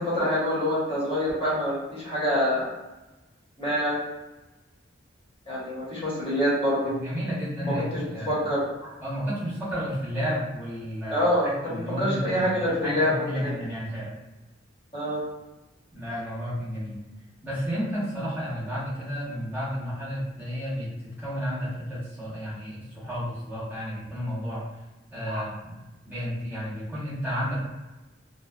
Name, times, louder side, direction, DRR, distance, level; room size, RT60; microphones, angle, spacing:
voice 1, 0.0-2.7 3.6-4.0 5.5-6.9 7.6-8.9 11.1-13.5 14.9-15.2 25.3-25.4, equal, 30° left, -8 dB, 1.0 m, -26 dB
voice 2, 6.8-8.4 9.0-14.1 15.9-17.0 17.4-24.6 25.1-25.8 26.0-27.7, equal, 10° right, -10 dB, 0.8 m, -32 dB
2.4 x 2.2 x 2.3 m, 1.1 s
head